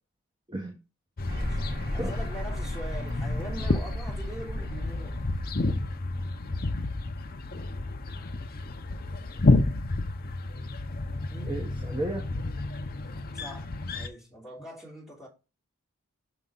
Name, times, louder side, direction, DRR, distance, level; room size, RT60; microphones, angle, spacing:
sound 1, 1.2-14.1, left 2 dB, 40° left, 0.7 m, -30 dB
voice 1, 1.2-1.6 1.9-5.2 8.5-8.6 11.3-11.6 13.3-15.3, right 1 dB, ahead, 3.1 m, -42 dB
sound 2, 1.3-7.8, left 1 dB, 55° right, 4.3 m, -35 dB
voice 2, 11.5-12.2, right 1 dB, 20° right, 0.9 m, -33 dB
6.0 x 5.7 x 3.9 m
head